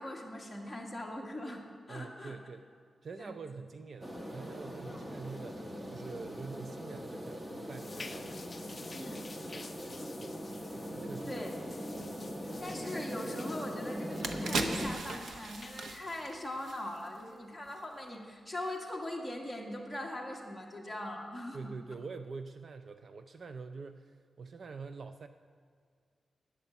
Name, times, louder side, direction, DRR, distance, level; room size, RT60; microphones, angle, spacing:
voice 1, 0.0-2.4 3.2-3.3 4.8-5.1 8.9-9.3 11.3-11.5 12.6-21.7, left 1 dB, 5° left, -2 dB, 1.7 m, -41 dB
voice 2, 1.9-2.7 3.0-8.3 9.0-10.4 10.7-11.4 21.5-25.3, right 4 dB, 50° right, 9 dB, 0.4 m, -46 dB
sound 1, 4.0-14.9, equal, 15° right, 1.1 m, -41 dB
sound 2, 7.7-16.0, left 3 dB, 30° left, 0.5 m, -51 dB
sound 3, 13.5-13.6 14.0-17.3 17.6-17.8, right 3 dB, 70° right, 0.9 m, -38 dB
11.5 x 9.0 x 7.0 m, 2.1 s
wide cardioid pair, 140°, 0 cm